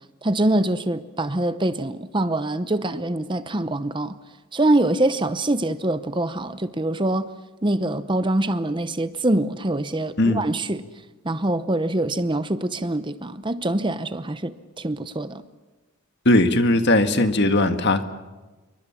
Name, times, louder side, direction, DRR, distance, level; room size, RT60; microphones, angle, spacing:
voice 1, 0.2-4.2 4.5-7.3 7.6-10.8 11.2-15.4, right 1 dB, 20° right, 0.8 m, -24 dB
voice 2, 16.3-18.0, left 2 dB, 50° left, 1.7 m, -18 dB
27.5 x 24.0 x 7.3 m
head